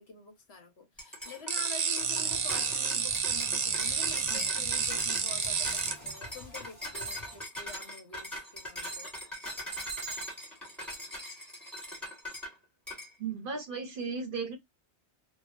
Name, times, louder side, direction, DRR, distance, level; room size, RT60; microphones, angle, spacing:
voice 1, 0.0-9.1, left 5 dB, 65° left, 1.2 m, -47 dB
sound 1, 1.0-12.5 12.9-13.1, equal, ahead, 1.4 m, -40 dB
sound 2, 1.5-5.9, right 7 dB, 80° right, 1.0 m, -30 dB
sound 3, 2.0-7.4, left 2 dB, 35° left, 1.3 m, -49 dB
voice 2, 13.2-14.6, right 5 dB, 55° right, 0.9 m, -35 dB
2.9 x 2.3 x 2.4 m
omnidirectional pair, 1.2 m